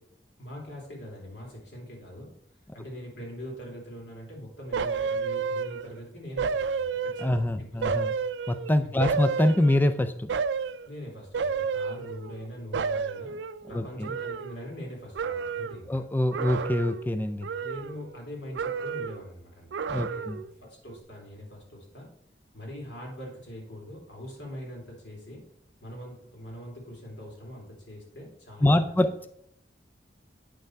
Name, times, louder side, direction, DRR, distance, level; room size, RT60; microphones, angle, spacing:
voice 1, 0.4-2.3 2.7-7.8 8.8-9.1 10.9-13.4 13.7-16.0 17.6-20.3 20.6-22.1 22.5-25.4 25.8-29.3, equal, 90° left, -2 dB, 3.1 m, -42 dB
sound 1, 4.7-6.0 6.4-7.5 7.8-9.9 10.3-10.9 11.3-12.5 12.7-14.9 15.2-15.8 16.3-17.1 17.4-18.3 18.5-19.3 19.7-20.5 20.9-21.0, right 5 dB, 85° right, 0.4 m, -31 dB
voice 2, 7.2-8.1 8.5-10.3 13.7-14.1 15.9-17.5 19.9-20.4 28.6-29.3, left 1 dB, 10° left, 9 dB, 0.4 m, -25 dB
8.8 x 5.7 x 4.6 m, 0.70 s
head